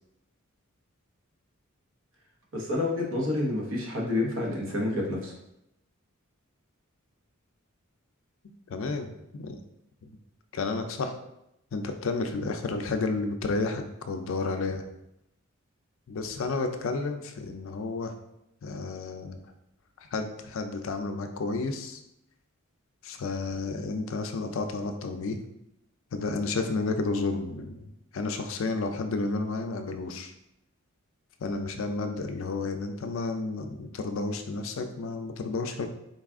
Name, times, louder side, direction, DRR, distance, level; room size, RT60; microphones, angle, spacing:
voice 1, 2.5-5.3, left 2 dB, 65° right, -2 dB, 1.0 m, -28 dB
voice 2, 8.7-9.6 10.0-10.1 10.5-11.2 11.7-14.8 16.1-18.1 18.6-19.4 20.0-22.0 23.0-25.4 26.1-30.3 31.4-35.9, left 3 dB, 65° left, 6 dB, 0.4 m, -31 dB
3.9 x 2.4 x 3.5 m, 0.82 s
head